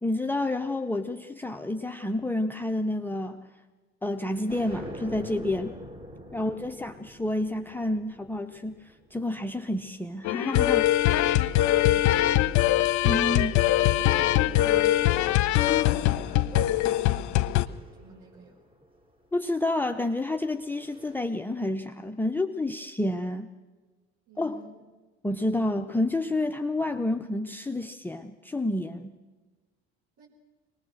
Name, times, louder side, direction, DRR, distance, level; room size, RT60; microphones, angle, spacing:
voice 1, 0.0-3.5 4.0-5.7 6.3-10.9 13.0-13.5 19.3-23.5 24.4-24.6 25.2-29.1, left 2 dB, 5° left, 5 dB, 0.8 m, -29 dB
sound 1, 4.2-10.8 11.6-13.4 13.8-19.1 20.1-21.2, equal, 15° right, 3.6 m, -46 dB
sound 2, 10.2-17.7, left 14 dB, 60° left, 0.8 m, -22 dB
voice 2, 11.8-12.8 14.2-18.5 24.3-24.7 30.2-30.3, right 2 dB, 55° right, -1 dB, 5.1 m, -46 dB
23.5 x 19.5 x 6.7 m, 1.3 s
hypercardioid pair, 60°, 33 cm